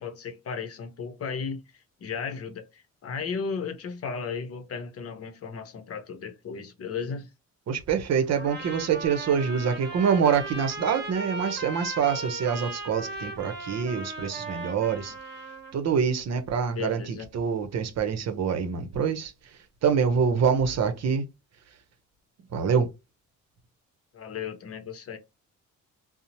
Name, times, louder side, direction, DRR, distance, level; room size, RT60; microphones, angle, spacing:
voice 1, 0.0-7.3 16.7-17.3 24.1-25.2, left 5 dB, 50° left, 0.7 m, -35 dB
voice 2, 7.7-15.1 15.7-21.3 22.5-22.9, right 6 dB, 60° right, 0.7 m, -26 dB
Trumpet, 8.4-15.7, right 2 dB, 35° right, 1.0 m, -37 dB
2.7 x 2.0 x 2.9 m
cardioid pair, 90°, 30 cm